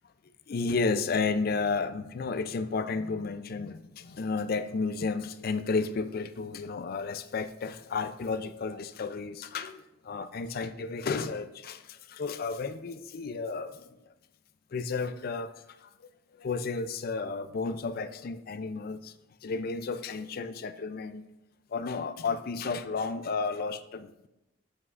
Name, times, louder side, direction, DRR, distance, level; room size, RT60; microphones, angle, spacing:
voice 1, 0.5-13.9 14.7-15.5 15.8-16.1 16.4-19.1 19.4-21.2 21.7-24.3, left 4 dB, 50° left, 12 dB, 0.4 m, -32 dB
8.2 x 7.2 x 2.5 m, 0.91 s
head